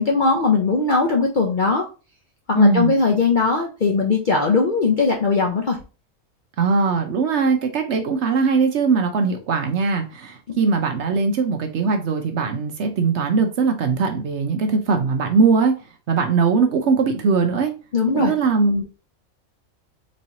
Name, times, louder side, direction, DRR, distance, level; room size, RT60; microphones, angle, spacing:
voice 1, 0.0-1.8 2.5-5.8 10.5-10.6 17.9-18.3, left 4 dB, 55° left, 0.5 m, -19 dB
voice 2, 2.6-2.9 6.6-15.7 16.1-17.7 18.1-18.8, right 4 dB, 60° right, 0.8 m, -20 dB
4.2 x 3.1 x 2.8 m
omnidirectional pair, 1.5 m